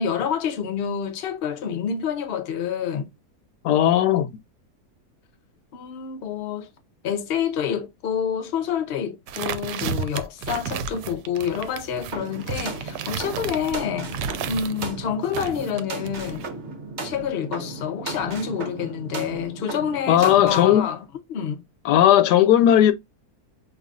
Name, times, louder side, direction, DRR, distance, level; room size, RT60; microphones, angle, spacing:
voice 1, 0.0-3.1 5.7-6.7 7.0-14.1 14.5-16.5 17.0-21.0 21.3-21.6, left 8 dB, 55° left, 0.7 m, -28 dB
voice 2, 3.6-4.4 20.1-20.9 21.8-22.9, left 11 dB, 85° left, 1.2 m, -17 dB
sound 1, 9.3-14.9 15.3-16.5, right 7 dB, 85° right, 1.2 m, -32 dB
sound 2, 12.1-20.8, right 3 dB, 50° right, 1.0 m, -35 dB
5.4 x 2.9 x 2.4 m
omnidirectional pair, 1.7 m